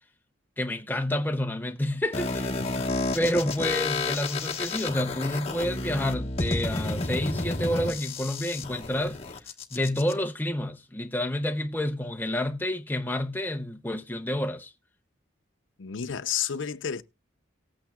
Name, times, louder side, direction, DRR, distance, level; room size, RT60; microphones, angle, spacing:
voice 1, 0.6-2.6 3.1-9.2 9.7-14.7, left 1 dB, 10° left, 0.6 m, -29 dB
sound 1, 2.1-10.1, left 2 dB, 30° left, 1.3 m, -31 dB
voice 2, 15.8-17.0, left 8 dB, 80° left, 0.6 m, -31 dB
18.5 x 8.7 x 2.3 m
head